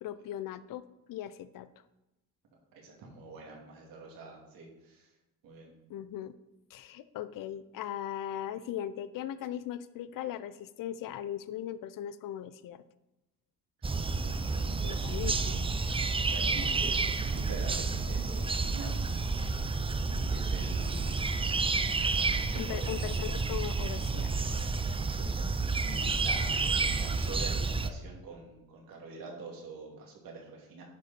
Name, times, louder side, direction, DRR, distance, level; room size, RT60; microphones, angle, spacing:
voice 1, 0.0-1.7 5.9-6.3 6.7-12.8 14.8-15.7 22.5-24.3, left 11 dB, 70° left, 14 dB, 0.6 m, -39 dB
voice 2, 2.7-5.1 5.4-5.7 14.2-15.1 16.0-18.9 20.0-21.1 22.1-23.0 25.0-30.8, right 3 dB, 75° right, -1 dB, 2.6 m, -46 dB
sound 1, 13.8-27.9, right 4 dB, 15° right, 0.5 m, -30 dB
10.0 x 5.3 x 4.2 m, 0.96 s
supercardioid pair, 75°, 35 cm